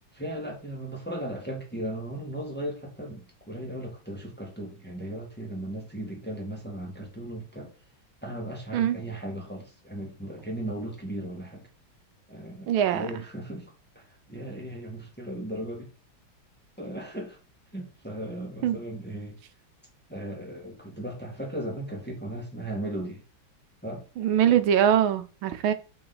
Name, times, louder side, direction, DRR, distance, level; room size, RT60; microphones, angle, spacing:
voice 1, 0.1-7.7 8.2-11.6 12.3-15.9 16.8-17.4 17.7-19.4 20.1-23.2 23.8-24.0, right 1 dB, 5° left, 1.6 m, -36 dB
voice 2, 12.7-13.1 18.6-18.8 24.2-25.7, right 10 dB, 90° right, 1.6 m, -22 dB
5.5 x 4.9 x 4.0 m
omnidirectional pair, 2.2 m